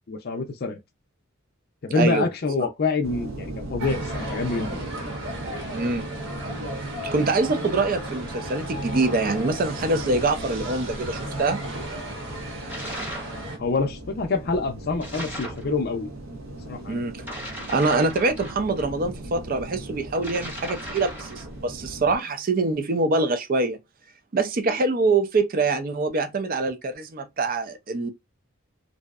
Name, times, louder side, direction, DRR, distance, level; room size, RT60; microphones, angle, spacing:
voice 1, 0.1-0.8 1.8-4.8 13.6-16.1 16.7-17.0, left 3 dB, 50° left, 0.4 m, -26 dB
voice 2, 1.9-2.3 5.7-6.1 7.1-11.6 16.9-17.2 17.7-23.8 24.3-28.1, right 3 dB, 45° right, 0.4 m, -24 dB
sound 1, 3.0-22.2, right 1 dB, 90° right, 0.7 m, -39 dB
sound 2, 3.8-13.6, right 1 dB, 65° right, 0.9 m, -34 dB
sound 3, 12.7-13.4 15.0-15.7 17.2-18.9 20.1-21.5, equal, 10° right, 0.8 m, -37 dB
2.6 x 2.0 x 2.3 m
head